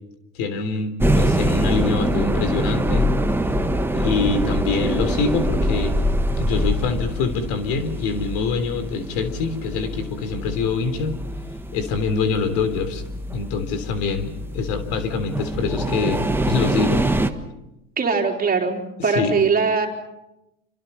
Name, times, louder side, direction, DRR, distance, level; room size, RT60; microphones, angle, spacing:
voice 1, 0.3-3.1 3.9-6.0 6.4-11.2 11.7-13.0 13.3-17.0 19.0-19.3, left 4 dB, 65° left, 10 dB, 3.6 m, -25 dB
sound 1, 1.0-17.3, equal, 5° right, 1.5 m, -24 dB
voice 2, 18.0-19.9, right 5 dB, 25° right, 2 dB, 3.9 m, -21 dB
28.0 x 25.0 x 5.6 m, 0.92 s
hypercardioid pair, 105°, 38 cm